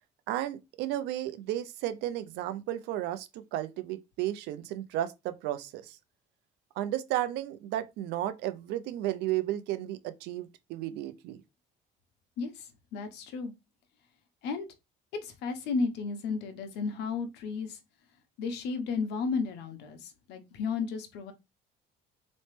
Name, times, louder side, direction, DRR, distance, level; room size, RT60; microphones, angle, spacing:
voice 1, 0.3-6.0 6.8-11.4, right 13 dB, 90° right, 0.6 m, -33 dB
voice 2, 12.4-13.5 14.4-14.7 15.2-17.8 18.4-21.3, left 4 dB, 85° left, 1.0 m, -33 dB
4.2 x 3.1 x 3.2 m
cardioid pair, 110°, 17 cm